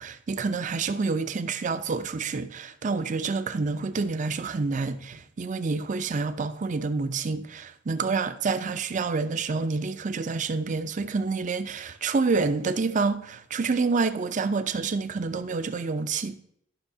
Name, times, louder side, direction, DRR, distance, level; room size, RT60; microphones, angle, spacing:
voice 1, 0.0-16.4, right 4 dB, 40° right, 0.5 m, -28 dB
11.5 x 6.1 x 2.7 m
head